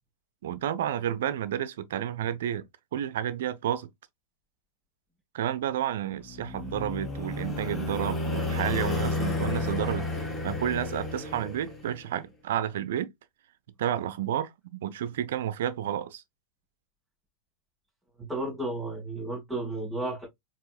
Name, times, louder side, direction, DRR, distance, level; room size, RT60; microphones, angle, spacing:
voice 1, 0.4-2.7 2.9-3.9 5.3-10.1 10.4-13.1 13.8-16.2, right 10 dB, 60° right, 0.4 m, -31 dB
sound 1, 6.3-12.0, left 2 dB, 15° left, 1.3 m, -32 dB
voice 2, 18.2-20.3, right 2 dB, 5° right, 1.6 m, -33 dB
4.6 x 2.9 x 2.3 m
figure-of-eight pair, 90°, 0 cm